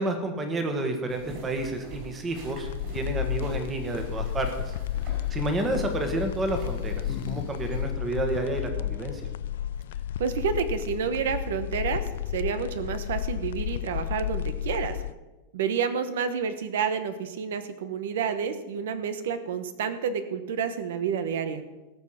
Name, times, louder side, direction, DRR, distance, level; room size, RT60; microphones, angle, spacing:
voice 1, 0.0-4.7 5.3-9.2, right 2 dB, 15° right, 5 dB, 1.5 m, -30 dB
sound 1, 1.1-7.8, right 3 dB, 40° right, 4.7 m, -44 dB
sound 2, 2.6-15.1, left 11 dB, 90° left, 0.3 m, -32 dB
sound 3, 5.0-5.4 6.4-7.5 7.8-7.9 9.5-9.6 9.8-10.2, left 11 dB, 40° left, 0.7 m, -39 dB
voice 2, 10.2-12.0 12.3-15.0 15.5-21.6, right 7 dB, 80° right, 11 dB, 1.0 m, -29 dB
19.0 x 6.4 x 5.8 m, 1.1 s
supercardioid pair, 170°, 0 cm